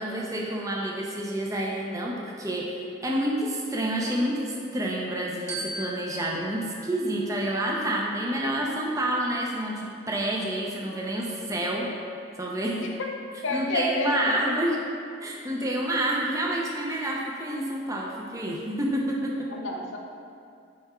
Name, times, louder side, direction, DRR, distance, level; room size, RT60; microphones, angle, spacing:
voice 1, 0.0-11.9 12.4-12.9 13.5-14.8 15.2-19.5, right 1 dB, 15° right, -2 dB, 0.7 m, -28 dB
Glockenspiel, 5.5-8.0, right 1 dB, 70° right, 1.6 m, -39 dB
voice 2, 13.4-14.2 19.5-20.0, left 2 dB, 80° left, 1 dB, 0.8 m, -29 dB
9.5 x 3.5 x 4.4 m, 2.5 s
head